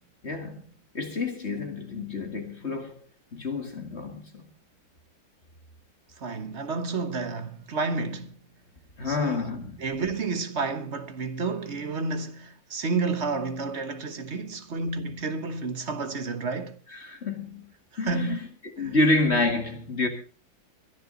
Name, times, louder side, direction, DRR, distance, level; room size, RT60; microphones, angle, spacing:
voice 1, 0.2-0.6 0.9-3.0 3.3-4.4 9.0-9.8 16.9-17.7 18.0-18.4 18.8-20.1, left 2 dB, 35° left, 2.2 m, -28 dB
voice 2, 6.2-8.4 9.0-9.4 9.8-16.8 18.1-18.4 18.8-19.0, right 4 dB, 40° right, 1.2 m, -30 dB
22.0 x 11.0 x 4.0 m
omnidirectional pair, 2.0 m